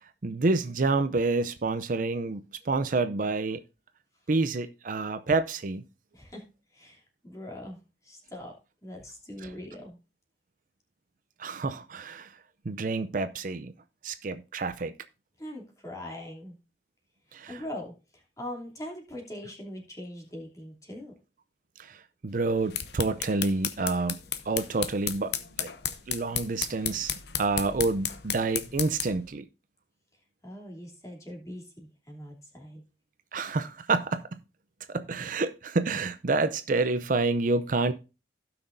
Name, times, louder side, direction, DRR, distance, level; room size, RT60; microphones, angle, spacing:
voice 1, 0.2-3.6 4.3-5.8 9.4-9.5 11.4-12.3 12.7-13.7 14.0-14.9 17.3-17.6 21.8-22.0 22.2-24.2 24.5-25.7 26.1-29.5 33.3-34.2 34.9-37.9, right 3 dB, 50° right, 0.5 m, -28 dB
voice 2, 6.1-6.4 6.7-7.8 8.0-8.5 8.8-10.0 15.4-16.6 17.5-21.1 30.4-32.8, left 1 dB, 20° left, 2.9 m, -41 dB
sound 1, 22.5-29.3, left 10 dB, 70° left, 0.8 m, -34 dB
16.5 x 6.0 x 2.6 m
head